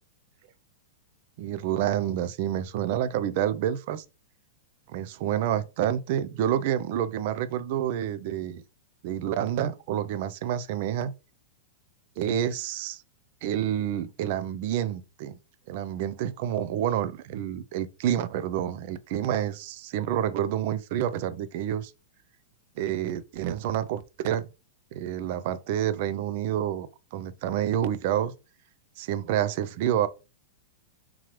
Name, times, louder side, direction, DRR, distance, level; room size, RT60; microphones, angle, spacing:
voice 1, 1.4-4.0 4.9-8.6 9.0-11.1 12.2-13.0 13.4-15.4 15.7-21.9 22.8-24.5 24.9-28.3 29.0-30.1, right 10 dB, 50° right, 0.4 m, -28 dB
3.8 x 3.0 x 3.0 m
hypercardioid pair, 140°, 0 cm